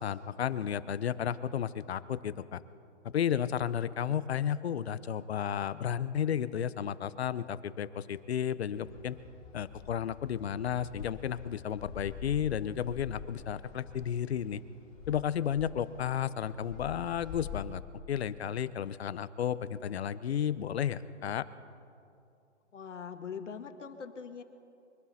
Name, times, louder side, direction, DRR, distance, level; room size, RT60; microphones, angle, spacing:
voice 1, 0.0-2.6 3.0-9.2 9.5-14.6 15.1-17.8 18.1-21.4, left 9 dB, 60° left, 15 dB, 0.7 m, -33 dB
sound 1, 8.7-17.6, left 7 dB, 25° left, 4.4 m, -47 dB
voice 2, 22.7-24.4, left 6 dB, 80° left, 8 dB, 1.5 m, -42 dB
23.5 x 12.5 x 4.1 m, 2.6 s
hypercardioid pair, 160°, 36 cm